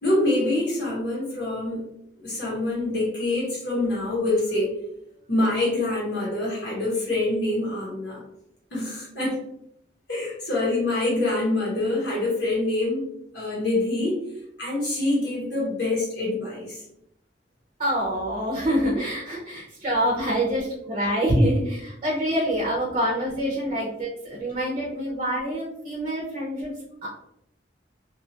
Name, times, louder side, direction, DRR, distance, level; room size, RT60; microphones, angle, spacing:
voice 1, 0.0-1.8 2.2-4.7 5.3-8.2 8.7-9.4 10.1-13.1 13.3-14.2 14.6-16.8, left 2 dB, 70° left, -5 dB, 1.1 m, -25 dB
voice 2, 17.8-26.8 27.0-27.1, equal, 35° right, -3 dB, 0.6 m, -26 dB
2.7 x 2.4 x 2.8 m, 0.78 s
head